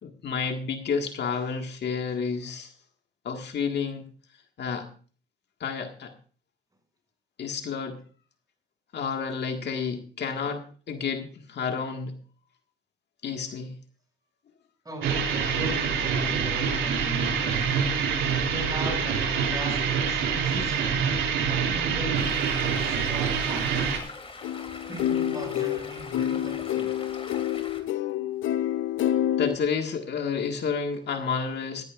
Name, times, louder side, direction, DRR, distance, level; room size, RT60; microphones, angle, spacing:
voice 1, 0.0-2.7 3.3-4.1 4.6-4.9 5.6-6.1 7.4-8.0 8.9-12.2 13.2-13.8 29.4-31.8, left 6 dB, 60° left, 1.8 m, -30 dB
voice 2, 14.8-21.2 21.5-23.9 24.9-27.0, equal, 20° right, 7.1 m, -39 dB
sound 1, 15.0-24.0, right 6 dB, 80° right, 3.5 m, -26 dB
Stream, 22.1-27.8, left 3 dB, 30° left, 2.9 m, -43 dB
sound 2, 24.4-29.6, left 11 dB, 80° left, 0.7 m, -28 dB
16.5 x 15.0 x 2.5 m
cardioid pair, 90°, 20 cm